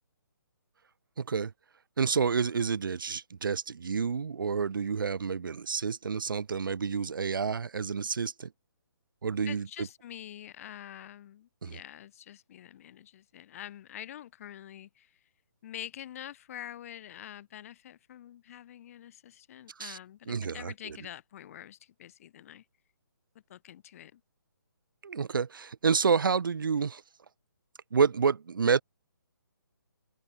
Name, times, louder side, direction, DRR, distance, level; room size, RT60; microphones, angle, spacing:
voice 1, 1.2-1.5 2.0-8.5 9.2-9.9 11.6-11.8 19.8-20.0 20.3-21.0 25.0-27.0 27.9-28.8, right 6 dB, 70° right, 0.8 m, -29 dB
voice 2, 9.5-15.1 15.6-22.6 23.5-24.2, left 11 dB, 40° left, 3.2 m, -46 dB
open air
figure-of-eight pair, 145°, 12 cm